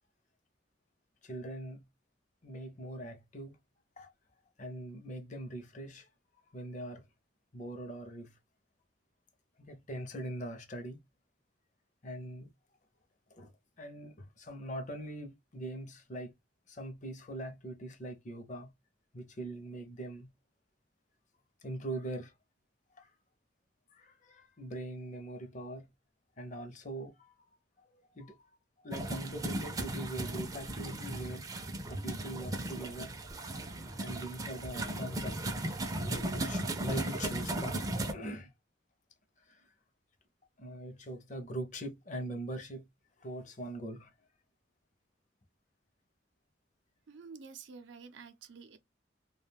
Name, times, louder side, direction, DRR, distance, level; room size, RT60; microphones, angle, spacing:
voice 1, 1.2-1.8 2.4-3.6 4.0-4.1 4.6-6.1 6.5-7.0 7.5-8.3 9.6-11.0 12.0-12.5 13.3-13.5 13.8-16.3 16.7-18.7 19.1-20.3 21.6-22.3 22.9-23.1 23.9-25.9 26.4-27.6 27.9-31.5 31.8-33.1 33.9-35.4 36.0-38.5 39.5-39.7 40.6-42.9 43.2-44.1, right 1 dB, 45° left, 0.6 m, -42 dB
sound 1, 28.9-38.1, right 1 dB, 20° right, 0.4 m, -36 dB
voice 2, 47.1-48.8, right 5 dB, 85° right, 0.5 m, -49 dB
2.3 x 2.2 x 3.2 m
head